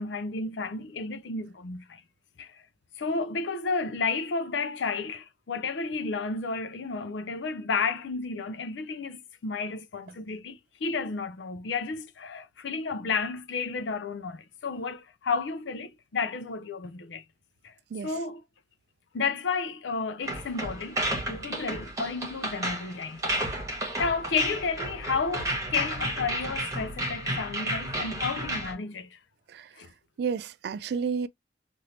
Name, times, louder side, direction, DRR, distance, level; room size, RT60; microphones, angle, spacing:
voice 1, 0.0-2.0 2.4-2.6 3.0-17.2 17.6-17.7 18.0-18.4 19.1-23.6 24.0-29.2 29.8-29.9, left 4 dB, 85° left, 0.5 m, -32 dB
sound 1, 20.2-28.7, right 1 dB, 20° right, 1.3 m, -32 dB
voice 2, 30.2-31.3, right 6 dB, 60° right, 0.3 m, -30 dB
3.2 x 2.5 x 2.7 m
head